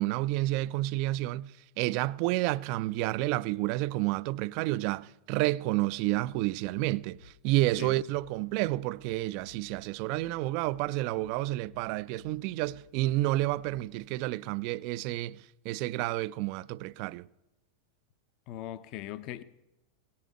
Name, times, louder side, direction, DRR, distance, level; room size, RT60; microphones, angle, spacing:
voice 1, 0.0-17.3, right 17 dB, 45° right, 0.4 m, -30 dB
sound 1, 6.1-14.0, left 5 dB, 80° left, 2.6 m, -57 dB
voice 2, 18.5-19.4, left 13 dB, 40° left, 0.6 m, -39 dB
18.0 x 8.6 x 7.3 m
figure-of-eight pair, 90°, 0 cm